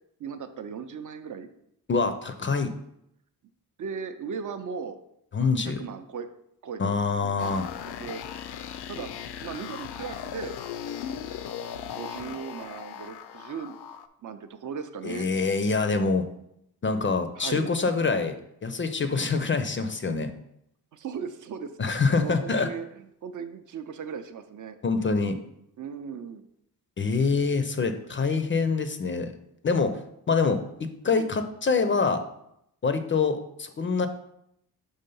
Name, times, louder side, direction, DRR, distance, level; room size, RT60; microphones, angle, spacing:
voice 1, 0.2-1.5 3.8-5.0 5.4-6.3 6.6-7.4 8.0-8.2 8.9-9.1 9.4-10.5 11.9-13.8 14.2-15.3 17.4-17.7 20.9-21.7 22.1-24.8 25.8-26.4 27.8-27.9 31.1-31.3, right 6 dB, 55° right, 9 dB, 0.5 m, -37 dB
voice 2, 1.9-2.7 5.3-5.8 6.8-7.7 15.0-16.2 16.8-18.4 18.6-20.3 21.8-22.7 24.8-25.4 27.0-29.3 29.6-30.0 30.3-32.2 32.8-34.1, left 4 dB, 30° left, 8 dB, 0.4 m, -25 dB
sound 1, 7.4-14.1, left 9 dB, 90° left, 0.5 m, -38 dB
5.5 x 3.5 x 5.4 m, 0.76 s
wide cardioid pair, 160°, 38 cm